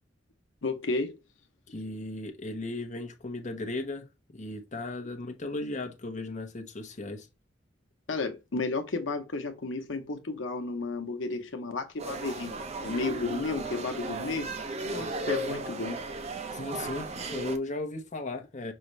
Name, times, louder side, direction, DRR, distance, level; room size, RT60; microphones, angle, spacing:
voice 1, 0.6-1.2 8.1-12.5 12.8-14.5 14.8-16.0, left 3 dB, 85° left, 0.9 m, -32 dB
voice 2, 1.7-4.1 4.3-7.3 16.5-18.7, left 2 dB, 40° left, 0.9 m, -36 dB
sound 1, 12.0-17.6, right 2 dB, 35° right, 0.6 m, -35 dB
5.5 x 2.5 x 3.1 m
head